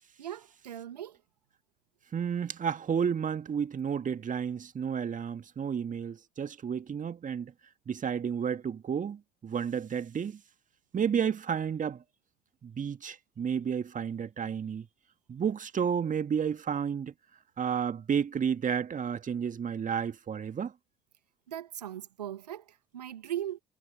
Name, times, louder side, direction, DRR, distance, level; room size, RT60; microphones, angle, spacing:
voice 1, 0.2-1.2 21.5-23.6, right 11 dB, 80° right, 1.6 m, -39 dB
voice 2, 2.1-7.5 7.9-10.4 10.9-12.0 12.6-14.9 15.3-17.1 17.6-20.7, right 7 dB, 40° right, 2.1 m, -31 dB
figure-of-eight pair, 45°, 21 cm